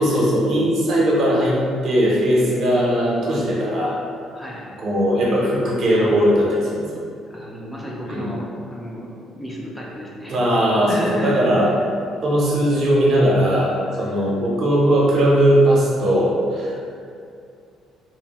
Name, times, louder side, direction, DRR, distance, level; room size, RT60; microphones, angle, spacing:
voice 1, 0.0-1.6 1.8-4.0 4.8-6.8 8.1-8.3 10.3-11.8 12.2-16.8, equal, 60° right, -4 dB, 0.6 m, -18 dB
voice 2, 4.3-4.8 7.3-9.1 9.4-10.4 10.9-11.8 13.9-14.3, equal, 5° left, -4 dB, 0.3 m, -33 dB
2.8 x 2.0 x 2.8 m, 2.4 s
cardioid pair, 120°, 0 cm